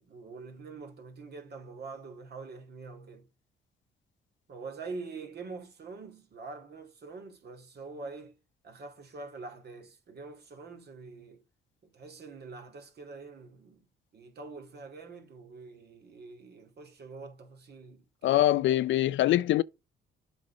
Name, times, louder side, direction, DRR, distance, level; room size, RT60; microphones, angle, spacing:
voice 1, 0.0-3.3 4.5-8.3 8.6-11.4 11.8-13.8 14.1-18.4, right 4 dB, 55° right, 2.4 m, -45 dB
voice 2, 18.2-19.6, left 14 dB, 75° left, 0.5 m, -23 dB
7.4 x 4.0 x 5.0 m
cardioid pair, 90°, 20 cm